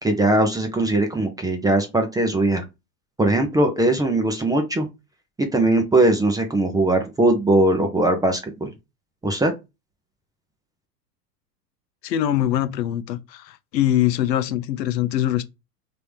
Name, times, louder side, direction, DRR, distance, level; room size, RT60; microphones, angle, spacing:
voice 1, 0.0-2.6 3.2-4.9 5.5-8.7 9.2-9.5, right 2 dB, 10° right, 0.5 m, -20 dB
voice 2, 12.0-15.4, left 12 dB, 80° left, 0.7 m, -23 dB
3.6 x 2.8 x 3.3 m
hypercardioid pair, 105°, 49 cm